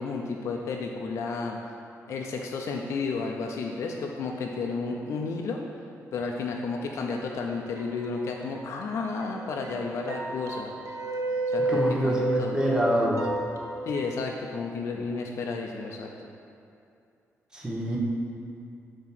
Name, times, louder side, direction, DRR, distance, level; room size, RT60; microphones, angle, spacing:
voice 1, 0.0-1.6 2.1-5.6 6.1-10.7 11.5-12.6 13.9-16.1, left 4 dB, 65° left, 1 dB, 0.5 m, -32 dB
sound 1, 7.7-8.8 9.2-14.2, right 2 dB, 70° right, 0.6 m, -32 dB
voice 2, 11.7-13.3 17.5-18.0, equal, 15° right, -4 dB, 1.0 m, -26 dB
7.2 x 2.9 x 6.0 m, 2.6 s
cardioid pair, 125°, 5 cm